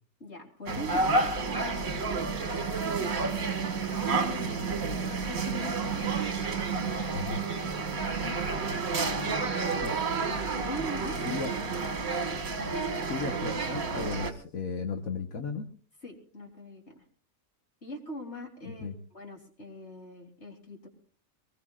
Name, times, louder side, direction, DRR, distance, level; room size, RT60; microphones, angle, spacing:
voice 1, 0.2-6.0 6.7-7.9 9.0-9.8 10.5-11.2 16.0-17.0 17.8-20.9, left 1 dB, 50° left, 1 dB, 3.8 m, -43 dB
sound 1, 0.7-14.3, right 4 dB, 70° right, 2.2 m, -30 dB
voice 2, 12.9-15.7 18.6-18.9, left 4 dB, 70° left, 5 dB, 1.7 m, -35 dB
23.0 x 20.5 x 2.5 m, 0.43 s
omnidirectional pair, 1.5 m